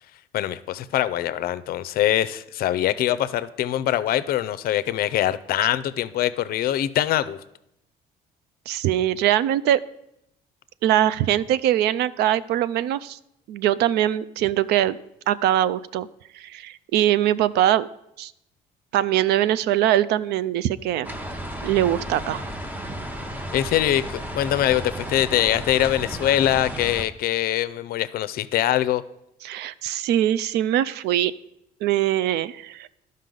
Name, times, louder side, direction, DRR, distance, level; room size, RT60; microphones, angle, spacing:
voice 1, 0.3-7.4 23.5-29.0, left 12 dB, 60° left, 15 dB, 0.5 m, -23 dB
voice 2, 8.7-9.8 10.8-13.2 13.5-15.0 15.3-16.1 16.3-17.9 18.2-18.3 18.9-21.1 21.6-22.4 29.4-31.3 31.8-32.9, right 12 dB, 80° right, 17 dB, 0.4 m, -22 dB
sound 1, 21.0-27.1, right 1 dB, 10° right, 0.7 m, -33 dB
12.0 x 5.4 x 3.8 m, 0.81 s
cardioid pair, 110°, 17 cm